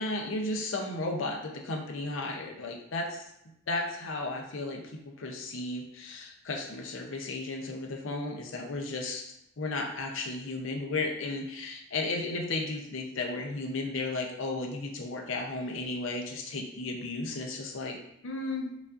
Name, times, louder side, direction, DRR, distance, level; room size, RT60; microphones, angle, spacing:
voice 1, 0.0-3.2 3.7-9.3 9.6-18.0 18.2-18.7, left 2 dB, 70° left, 2 dB, 0.6 m, -34 dB
4.9 x 2.5 x 2.5 m, 0.77 s
head